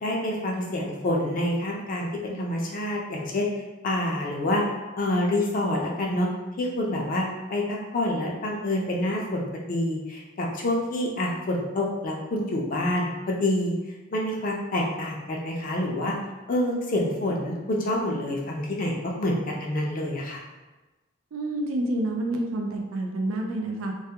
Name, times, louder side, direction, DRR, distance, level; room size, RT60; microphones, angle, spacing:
voice 1, 0.0-3.5 3.8-4.6 5.0-6.3 6.6-13.7 14.1-16.1 16.5-20.4, left 1 dB, 40° left, -1 dB, 0.4 m, -27 dB
voice 2, 21.3-23.9, right 1 dB, 85° right, 2 dB, 0.4 m, -28 dB
2.3 x 2.1 x 2.7 m, 1.1 s
head